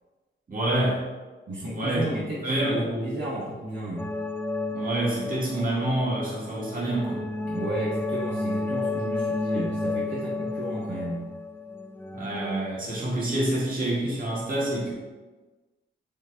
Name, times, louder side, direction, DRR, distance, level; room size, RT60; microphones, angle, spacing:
voice 1, 0.5-1.0 1.7-2.1 2.4-3.2 4.7-7.2 12.1-14.9, right 1 dB, 40° right, -5 dB, 1.9 m, -27 dB
voice 2, 1.5-4.1 7.4-11.3, right 1 dB, 65° right, -7 dB, 1.5 m, -33 dB
sound 1, 4.0-12.7, left 2 dB, 10° left, 0.4 m, -32 dB
6.3 x 3.9 x 4.6 m, 1.2 s
wide cardioid pair, 135°, 21 cm